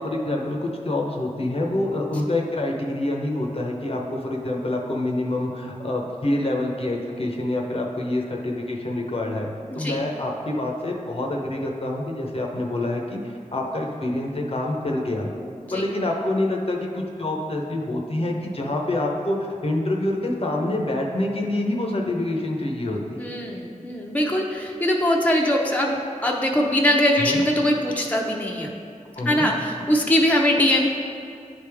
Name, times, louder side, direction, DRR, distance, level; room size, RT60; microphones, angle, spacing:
voice 1, 0.0-9.5 9.8-15.3 15.7-19.4 19.6-23.3 27.2-27.4 29.2-29.5, left 1 dB, 45° left, 0 dB, 0.8 m, -26 dB
voice 2, 23.2-28.7 29.2-30.9, left 1 dB, 10° left, -1 dB, 0.7 m, -22 dB
10.0 x 3.4 x 3.4 m, 2.4 s
wide cardioid pair, 60°, 13 cm